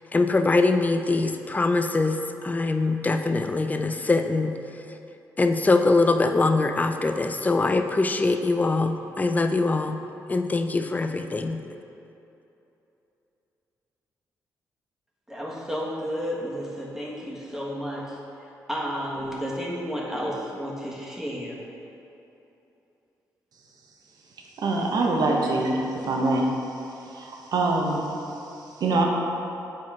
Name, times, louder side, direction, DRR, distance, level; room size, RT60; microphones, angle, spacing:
voice 1, 0.1-4.6 5.4-10.0 10.3-11.6, left 3 dB, 20° left, 7 dB, 0.4 m, -23 dB
voice 2, 15.3-18.2 18.7-21.6, equal, 5° right, -5 dB, 1.5 m, -32 dB
voice 3, 24.6-26.5 27.0-29.0, right 2 dB, 70° right, 0 dB, 1.0 m, -25 dB
8.3 x 4.3 x 3.6 m, 2.9 s
cardioid pair, 70°, 7 cm